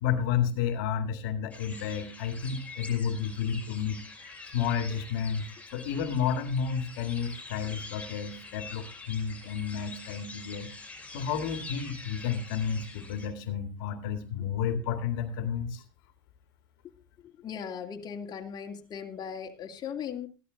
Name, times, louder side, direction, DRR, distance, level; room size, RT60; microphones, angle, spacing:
voice 1, 0.0-4.0 4.5-5.4 5.7-10.7 11.1-15.8, left 7 dB, 70° left, 8 dB, 2.1 m, -31 dB
sound 1, 1.5-13.3, left 3 dB, 10° left, 5.4 m, -45 dB
voice 2, 17.2-20.3, left 7 dB, 35° left, 4 dB, 2.7 m, -38 dB
15.5 x 12.0 x 3.9 m, 0.32 s
hypercardioid pair, 100°, 12 cm